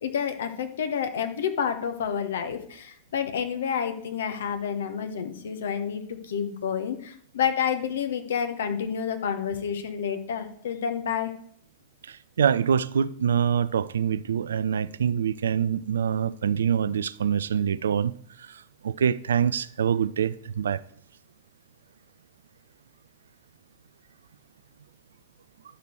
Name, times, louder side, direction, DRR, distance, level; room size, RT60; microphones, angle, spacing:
voice 1, 0.0-11.3, left 7 dB, 60° left, 1.2 m, -29 dB
voice 2, 12.1-18.1 18.5-18.6 18.8-20.8, right 8 dB, 65° right, 0.4 m, -25 dB
11.0 x 6.6 x 4.5 m
figure-of-eight pair, 90°, 0 cm